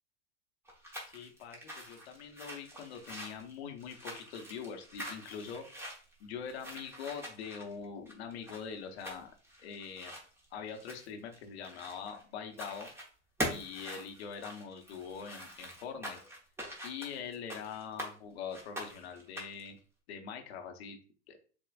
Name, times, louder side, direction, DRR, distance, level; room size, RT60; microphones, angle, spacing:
sound 1, 0.6-12.2 12.5-13.1 13.4-18.1 18.5-19.7, equal, 5° right, 1.1 m, -44 dB
voice 1, 1.1-5.9 6.2-9.3 9.6-10.1 10.5-12.9 13.5-16.2 16.8-19.8 20.1-21.0 21.3-21.4, left 6 dB, 60° left, 5 dB, 0.9 m, -43 dB
6.9 x 2.4 x 2.3 m, 0.40 s
hypercardioid pair, 95°, 36 cm